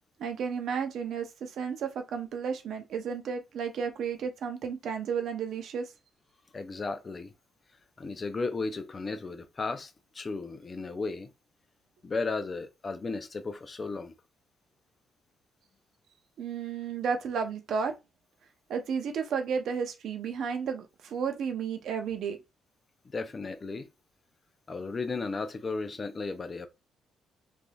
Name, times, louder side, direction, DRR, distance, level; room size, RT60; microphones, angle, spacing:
voice 1, 0.2-5.9 16.4-17.9 18.7-22.4, right 6 dB, 70° right, 0.6 m, -32 dB
voice 2, 6.5-7.3 8.0-11.3 12.0-14.1 23.0-23.9 24.7-26.7, left 3 dB, 35° left, 0.5 m, -35 dB
3.3 x 2.5 x 2.3 m
cardioid pair, 90°, 0 cm